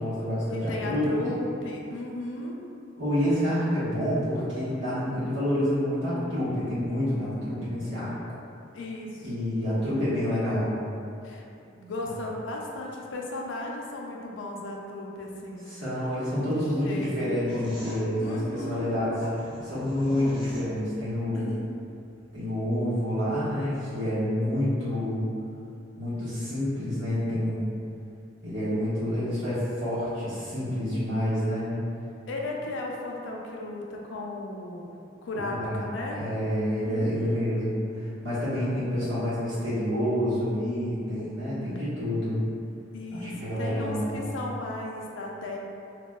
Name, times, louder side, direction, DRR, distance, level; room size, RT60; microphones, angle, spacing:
voice 1, 0.0-1.3 3.0-8.1 9.2-10.8 15.7-21.5 22.3-25.3 26.0-27.7 28.4-31.7 35.5-42.4 43.1-44.2, equal, 80° right, -11 dB, 1.2 m, -28 dB
voice 2, 0.5-2.6 8.7-9.3 11.2-11.4 11.8-15.6 16.6-17.3 18.2-19.0 21.3-21.7 32.3-35.0 35.2-36.2 36.8-37.5 42.9-45.6, left 2 dB, 70° left, -1 dB, 0.4 m, -36 dB
sound 1, 17.5-21.1, equal, 25° right, 0.7 m, -42 dB
3.5 x 2.3 x 2.3 m, 2.7 s
head